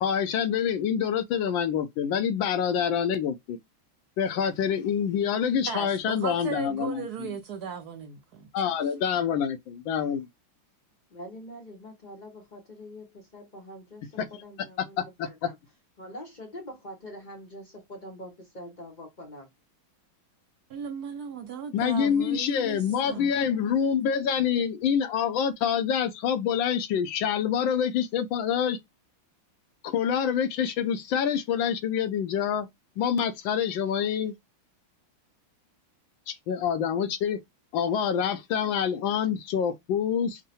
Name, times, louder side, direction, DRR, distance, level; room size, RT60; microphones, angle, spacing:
voice 1, 0.0-3.6 4.2-7.3 8.5-10.3 14.2-14.3 15.0-15.3 21.7-28.8 29.8-32.7 33.0-34.3 36.3-37.4 37.7-40.4, left 8 dB, 80° left, 1.4 m, -26 dB
voice 2, 5.7-8.8 20.7-23.3, right 6 dB, 65° right, 1.0 m, -37 dB
voice 3, 11.1-15.6 16.0-19.5, equal, 50° left, 0.5 m, -44 dB
3.7 x 2.1 x 4.1 m
omnidirectional pair, 2.1 m